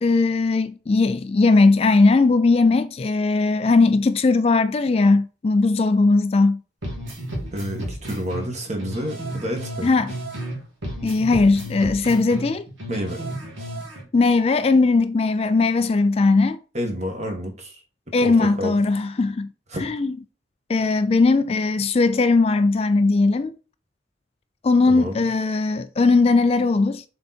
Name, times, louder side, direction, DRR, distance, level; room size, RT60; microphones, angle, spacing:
voice 1, 0.0-6.6 9.8-10.1 11.0-12.7 14.1-16.6 18.1-19.5 19.8-20.2 20.7-23.6 24.6-27.0, left 3 dB, 30° left, 0.3 m, -19 dB
sound 1, 6.8-10.6 10.8-14.0, right 1 dB, 80° right, 2.5 m, -33 dB
voice 2, 7.5-9.9 12.9-13.2 16.7-17.8 18.2-18.8 19.7-19.8 24.9-25.2, equal, 35° right, 1.7 m, -29 dB
6.9 x 3.9 x 4.2 m
head